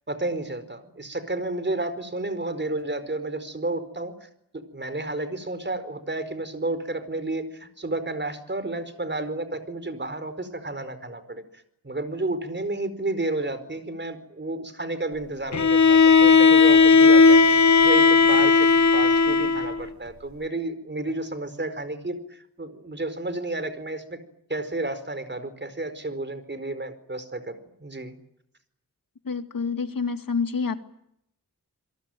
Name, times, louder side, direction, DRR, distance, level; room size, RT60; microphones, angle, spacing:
voice 1, 0.1-4.3 4.5-11.4 11.8-24.2 24.5-28.1, right 2 dB, 30° right, 12 dB, 4.7 m, -31 dB
Bowed string instrument, 15.5-19.8, left 4 dB, 55° left, 1.4 m, -16 dB
voice 2, 29.2-30.8, left 5 dB, 75° left, 8 dB, 2.3 m, -28 dB
28.5 x 23.0 x 9.2 m, 0.76 s
wide cardioid pair, 100°, 34 cm